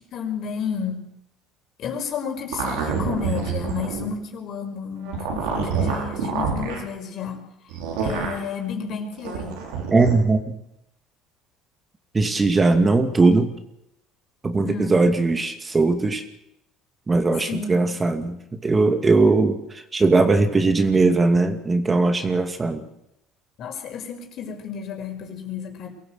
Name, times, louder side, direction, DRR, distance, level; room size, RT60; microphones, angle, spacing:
voice 1, 0.1-1.1 1.8-7.5 8.0-9.6 14.6-15.0 17.5-17.8 23.6-25.9, left 6 dB, 60° left, 3 dB, 5.4 m, -31 dB
sound 1, 2.5-4.1 5.0-6.8 7.7-8.4 9.2-10.1, right 6 dB, 90° right, 5.8 m, -27 dB
voice 2, 9.9-10.5 12.1-13.5 14.4-16.2 17.1-19.6 19.9-22.8, right 3 dB, 25° right, 7 dB, 2.4 m, -19 dB
23.5 x 15.5 x 8.1 m, 0.81 s
supercardioid pair, 95°, 0 cm